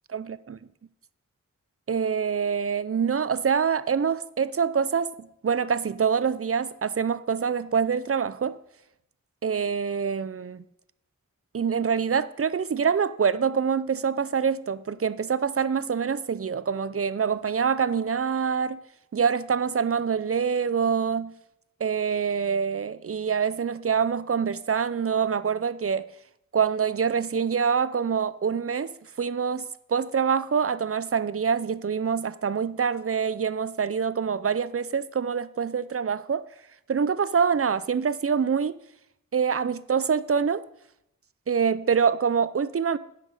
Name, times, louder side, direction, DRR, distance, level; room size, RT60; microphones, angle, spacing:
voice 1, 0.1-0.6 1.9-8.6 9.4-10.6 11.5-18.8 19.1-21.3 21.8-26.1 26.5-36.5 36.9-38.8 39.3-40.6 41.5-43.0, right 6 dB, 45° right, 0.5 m, -25 dB
10.5 x 5.9 x 6.5 m
wide cardioid pair, 50°, 33 cm